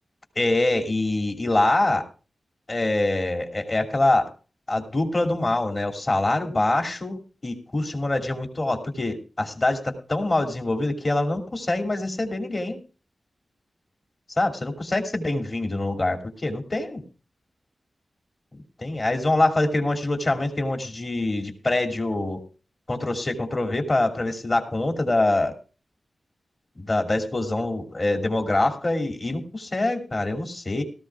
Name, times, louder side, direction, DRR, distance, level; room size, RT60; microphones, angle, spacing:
voice 1, 0.4-2.1 2.7-4.3 4.7-12.8 14.4-17.0 18.8-22.4 22.9-25.5 26.8-30.8, left 2 dB, 45° left, 4 dB, 2.7 m, -24 dB
17.5 x 14.0 x 2.4 m, 0.36 s
cardioid pair, 50°, 0 cm